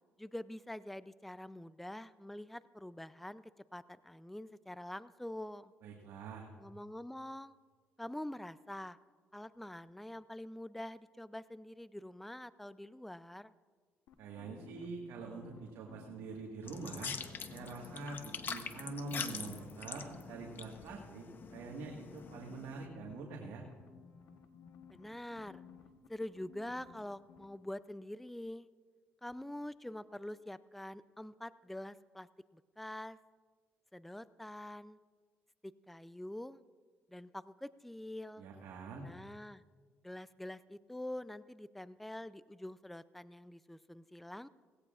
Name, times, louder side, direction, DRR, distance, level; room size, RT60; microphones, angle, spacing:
voice 1, 0.2-5.7 6.6-7.6 8.0-9.0 9.3-13.5 24.9-25.6 26.1-28.7 29.2-33.2 33.9-35.0 35.6-36.6 37.1-38.5 39.0-39.6 40.0-44.5, left 1 dB, 5° left, 16 dB, 0.4 m, -45 dB
voice 2, 5.8-6.5 14.2-17.1 17.5-23.6 38.4-39.1, right 3 dB, 80° right, -1 dB, 1.6 m, -45 dB
sound 1, 14.1-16.3 16.7-18.7 19.1-20.5 21.4-27.0 27.3-27.5, left 7 dB, 80° left, 1.1 m, -57 dB
sound 2, 16.6-22.9, left 6 dB, 45° left, 0.9 m, -45 dB
17.5 x 16.5 x 2.4 m, 1.5 s
cardioid pair, 95°, 5 cm